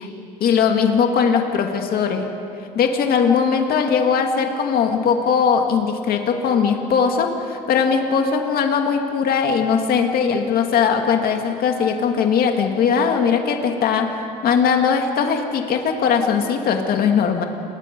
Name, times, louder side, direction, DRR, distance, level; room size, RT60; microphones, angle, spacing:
voice 1, 0.4-2.3 2.7-17.4, left 6 dB, 65° left, 3 dB, 2.2 m, -19 dB
29.5 x 21.0 x 5.4 m, 2.7 s
cardioid pair, 110°, 17 cm